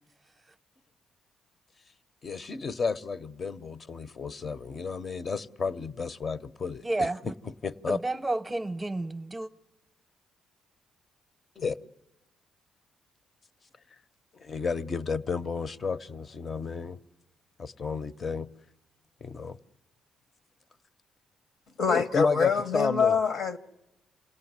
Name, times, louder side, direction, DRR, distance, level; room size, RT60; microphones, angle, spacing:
voice 1, 2.2-7.3 7.6-8.0 11.6-11.8 14.3-17.0 17.6-18.5 19.2-19.6 21.9-23.2, left 5 dB, 40° left, 0.8 m, -32 dB
voice 2, 6.8-7.3 7.9-9.5, right 2 dB, 15° right, 0.8 m, -31 dB
voice 3, 21.8-23.6, left 5 dB, 70° left, 1.1 m, -25 dB
27.5 x 17.5 x 9.6 m
cardioid pair, 90°, 0 cm